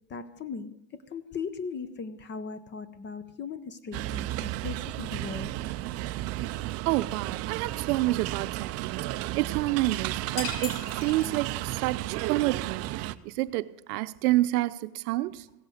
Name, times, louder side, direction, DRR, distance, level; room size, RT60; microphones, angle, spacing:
voice 1, 0.1-5.6 9.7-9.8, left 5 dB, 25° left, 0.7 m, -38 dB
sound 1, 3.9-13.2, right 16 dB, 35° right, 0.4 m, -33 dB
voice 2, 6.9-9.1 9.3-15.5, right 17 dB, 70° right, 0.7 m, -29 dB
sound 2, 10.4-11.8, left 5 dB, 80° left, 3.5 m, -38 dB
16.5 x 8.0 x 6.6 m
supercardioid pair, 130°, 47 cm